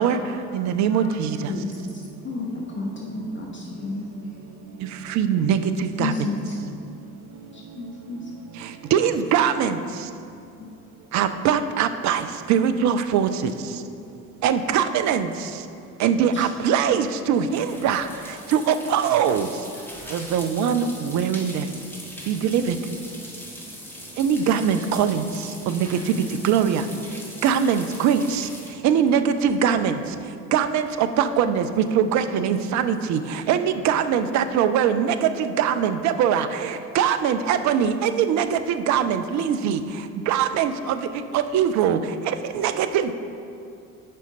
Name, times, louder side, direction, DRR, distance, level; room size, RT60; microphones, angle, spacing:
voice 1, 0.0-1.3 1.6-1.8 2.4-2.7 3.6-4.4 4.7-5.1, equal, 75° left, -6 dB, 1.7 m, -47 dB
voice 2, 0.5-1.4 5.1-6.1 8.9-9.8 11.1-13.5 14.4-15.3 16.0-18.1 18.5-19.5 20.1-21.7 22.3-22.8 24.2-25.2 25.7-25.9 26.4-26.8 27.4-28.4 28.8-30.0 30.5-31.7 31.9-33.2 33.5-39.8 40.3-41.0 41.3-42.0 42.4-43.1, right 8 dB, 45° right, 9 dB, 0.5 m, -22 dB
voice 3, 2.2-4.0 6.0-6.6 7.5-8.2 16.3-16.5, left 3 dB, 30° left, -2 dB, 0.9 m, -31 dB
sound 1, 16.9-29.9, equal, 5° left, 1.4 m, -41 dB
7.6 x 5.1 x 4.1 m, 2.5 s
figure-of-eight pair, 50°, 40 cm